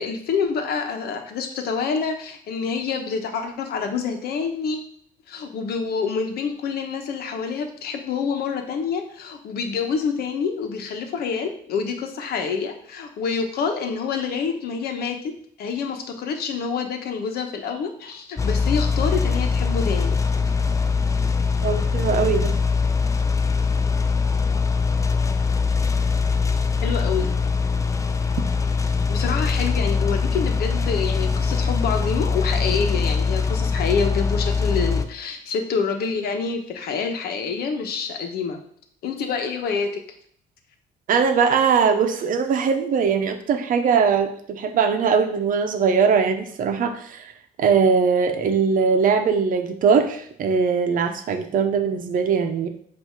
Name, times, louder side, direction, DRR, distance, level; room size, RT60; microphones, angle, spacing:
voice 1, 0.0-4.8 5.3-15.3 15.6-20.2 26.8-27.3 29.1-38.6 39.0-39.9, left 5 dB, 70° left, 5 dB, 1.1 m, -27 dB
sound 1, 18.4-35.0, left 5 dB, 20° left, 0.5 m, -22 dB
voice 2, 21.6-22.5 41.1-47.3 47.6-52.7, right 6 dB, 55° right, 7 dB, 0.8 m, -21 dB
7.9 x 2.8 x 4.6 m, 0.62 s
cardioid pair, 110°, 17 cm